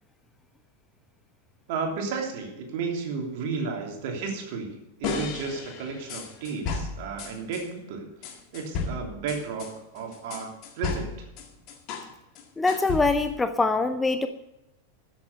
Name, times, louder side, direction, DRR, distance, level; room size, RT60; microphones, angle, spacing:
voice 1, 1.7-9.7 9.9-11.3, right 5 dB, 50° right, 2 dB, 3.0 m, -33 dB
sound 1, 5.0-7.7 8.2-12.1 12.4-13.4, left 5 dB, 40° left, 1.9 m, -34 dB
voice 2, 12.6-14.3, left 3 dB, 10° left, 9 dB, 0.6 m, -23 dB
13.5 x 7.4 x 6.8 m, 0.92 s
figure-of-eight pair, 90°, 0 cm